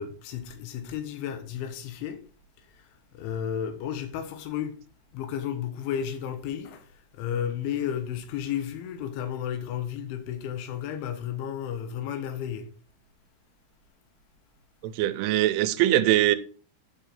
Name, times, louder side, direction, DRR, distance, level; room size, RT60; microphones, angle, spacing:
voice 1, 0.0-2.2 2.6-4.8 5.1-12.7, left 9 dB, 80° left, 3.5 m, -33 dB
voice 2, 14.8-16.4, right 14 dB, 90° right, 3.2 m, -22 dB
11.0 x 5.5 x 3.7 m
omnidirectional pair, 5.5 m